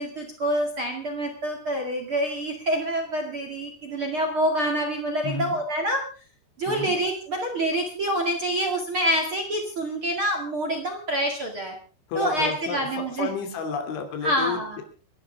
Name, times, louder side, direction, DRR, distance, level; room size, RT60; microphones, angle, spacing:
voice 1, 0.0-6.0 6.6-11.8 12.1-13.3 14.2-14.8, right 1 dB, 40° right, 3 dB, 2.2 m, -26 dB
voice 2, 5.2-5.6 6.7-7.0 12.1-12.9 13.2-14.6, left 6 dB, 75° left, 6 dB, 5.2 m, -30 dB
29.0 x 11.5 x 3.5 m, 0.36 s
omnidirectional pair, 5.4 m